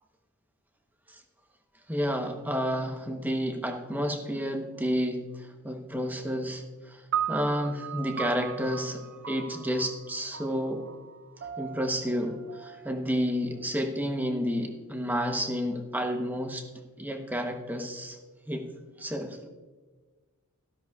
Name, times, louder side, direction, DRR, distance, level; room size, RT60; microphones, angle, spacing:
voice 1, 1.9-7.0 7.3-10.8 11.6-16.6 17.0-18.2 18.5-18.7 19.0-19.4, equal, 10° right, 4 dB, 0.9 m, -30 dB
sound 1, 7.1-13.6, right 9 dB, 55° right, 0.5 m, -37 dB
13.5 x 12.0 x 2.4 m, 1.3 s
head